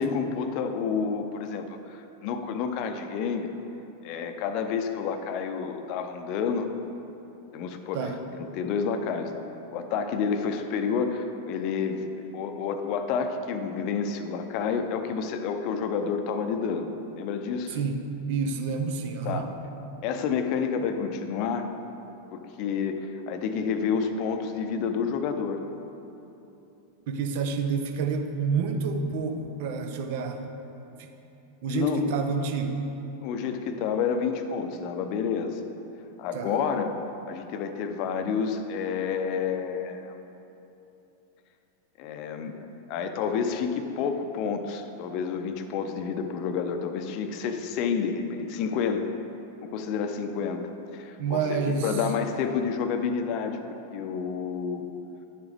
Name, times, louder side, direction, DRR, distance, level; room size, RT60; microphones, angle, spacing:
voice 1, 0.0-3.5 4.0-6.7 7.5-9.4 9.7-16.9 17.2-17.8 19.2-19.5 20.0-21.7 22.3-25.6 31.7-32.1 33.2-35.6 36.2-37.0 37.3-40.2 42.0-42.6 42.9-49.1 49.6-50.6 50.9-53.6 53.9-54.9, left 6 dB, 45° left, 7 dB, 0.6 m, -29 dB
voice 2, 17.7-19.5 27.1-30.4 31.0-31.1 31.6-32.8 36.3-36.5 51.2-52.0, right 5 dB, 50° right, 5 dB, 0.7 m, -29 dB
10.5 x 7.0 x 3.4 m, 2.9 s
figure-of-eight pair, 90°, 0 cm